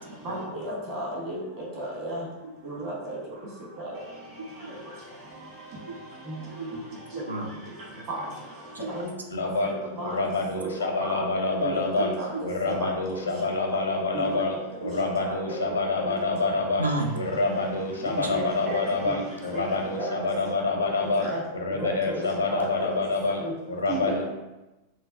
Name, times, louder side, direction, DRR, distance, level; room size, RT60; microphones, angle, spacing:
voice 1, 0.2-1.4 1.8-2.2 2.6-3.2 3.8-4.0 6.3-6.4 8.1-8.2 8.9-9.1 9.6-10.1 10.6-10.7 11.1-11.2 11.6-12.9 14.1-14.4 15.3-16.0 16.4-16.5 18.2-18.8 19.1-19.2 19.5-19.6 20.0-20.1 21.2-21.4 21.8-22.2 22.5-23.0 23.4-23.5 23.9-24.2, right 1 dB, 45° right, -4 dB, 1.3 m, -33 dB
voice 2, 4.4-4.7 5.9-6.0 6.5-6.8 7.1-7.7 8.8-8.9 12.3-12.4 14.8-15.1 16.8-17.3 24.2-24.3, right 2 dB, 80° right, 2 dB, 0.3 m, -32 dB
voice 3, 9.3-9.7 10.0-12.1 12.4-14.5 14.8-16.9 17.1-21.3 21.6-23.4 23.7-24.2, left 3 dB, 75° left, 1 dB, 0.6 m, -27 dB
3.8 x 2.3 x 2.6 m, 1.0 s
figure-of-eight pair, 90°, 0 cm